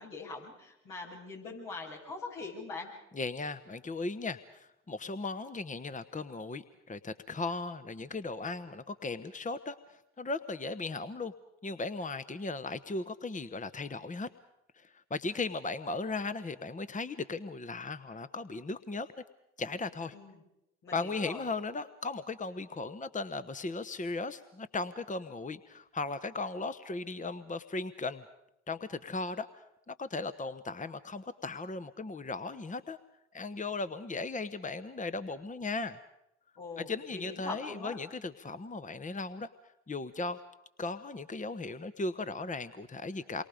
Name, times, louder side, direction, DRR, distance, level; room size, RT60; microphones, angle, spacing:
voice 1, 0.0-2.9 20.1-20.4 20.8-21.5 36.6-38.0, left 3 dB, 75° left, -3 dB, 7.5 m, -42 dB
voice 2, 3.1-11.3 11.6-14.3 14.8-19.1 19.6-20.2 20.9-28.2 28.7-33.0 33.3-36.0 36.8-39.5 39.9-40.4 40.8-43.4, left 3 dB, 20° left, 12 dB, 1.1 m, -37 dB
28.0 x 24.0 x 5.1 m, 0.83 s
hypercardioid pair, 45°, 35 cm